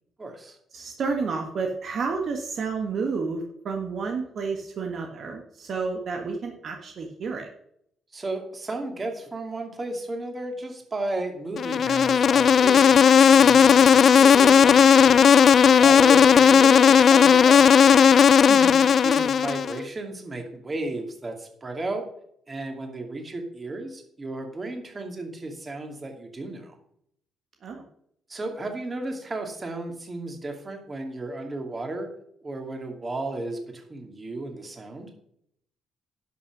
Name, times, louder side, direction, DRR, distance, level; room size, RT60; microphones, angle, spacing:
voice 1, 0.2-0.6 8.1-15.4 15.8-17.8 19.0-22.1 22.5-26.8 28.3-32.1 32.4-35.1, right 2 dB, 30° right, 4 dB, 2.5 m, -34 dB
voice 2, 0.7-7.5 18.5-18.9 27.6-27.8, right 4 dB, 60° right, 2 dB, 1.4 m, -30 dB
Insect, 11.6-19.8, left 7 dB, 55° left, 0.4 m, -15 dB
11.0 x 6.0 x 6.0 m, 0.71 s
cardioid pair, 90°, 0 cm